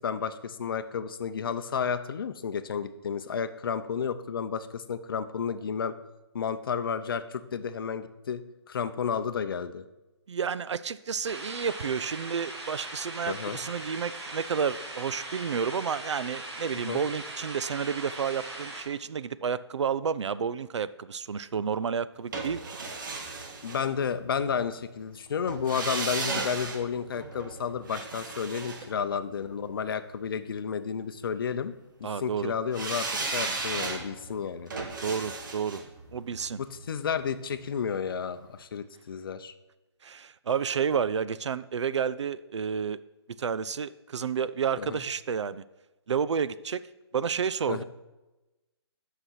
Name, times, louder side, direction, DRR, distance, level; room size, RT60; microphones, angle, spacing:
voice 1, 0.0-5.9 6.3-8.4 8.7-9.8 13.3-13.6 16.9-17.0 23.6-31.7 32.0-34.7 36.6-39.5 44.8-45.0 47.7-47.8, left 7 dB, 50° left, 11 dB, 0.6 m, -32 dB
voice 2, 10.3-22.8 32.0-32.5 35.0-35.8 36.1-36.6 40.0-43.0 43.4-45.6 46.1-46.8 47.1-47.8, right 7 dB, 85° right, 17 dB, 0.5 m, -30 dB
sound 1, 11.2-18.8, right 2 dB, 70° right, 2.1 m, -40 dB
sound 2, 22.3-24.4 25.5-29.7 32.7-37.7 38.0-38.1, right 3 dB, 45° right, 1.2 m, -36 dB
8.2 x 5.8 x 5.7 m, 1.1 s
hypercardioid pair, 165°, 14 cm